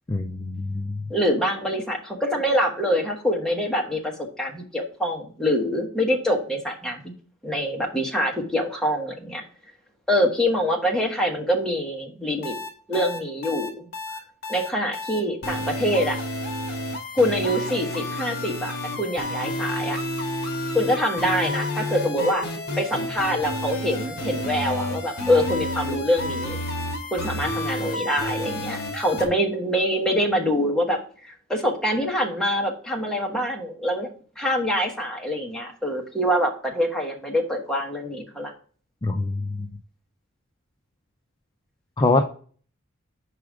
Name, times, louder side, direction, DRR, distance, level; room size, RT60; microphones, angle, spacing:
voice 1, 0.1-1.1 39.0-39.7 42.0-42.2, left 2 dB, 20° left, 4 dB, 0.4 m, -24 dB
voice 2, 1.1-7.1 7.4-9.4 10.1-12.5 12.9-13.9 14.5-16.2 17.1-18.7 19.0-20.0 20.7-22.4 22.8-26.6 27.1-31.0 31.3-34.1 34.4-38.5, equal, 5° left, 0 dB, 1.1 m, -25 dB
sound 1, 12.4-29.3, left 1 dB, 50° left, 1.5 m, -30 dB
4.9 x 4.8 x 4.9 m, 0.43 s
head